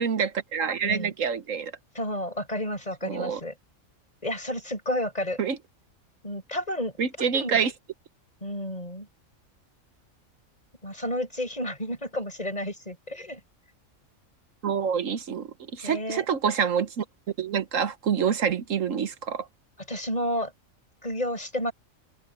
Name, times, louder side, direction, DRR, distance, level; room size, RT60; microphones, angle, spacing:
voice 1, 0.0-1.7 3.0-3.4 5.4-5.6 7.0-7.7 14.6-17.0 17.4-19.5, right 7 dB, 70° right, 1.3 m, -27 dB
voice 2, 1.9-3.5 4.2-5.4 6.2-7.6 8.4-9.1 10.8-13.4 15.8-16.2 19.9-20.5 21.0-21.7, left 1 dB, 30° left, 7.2 m, -31 dB
open air
omnidirectional pair, 1.4 m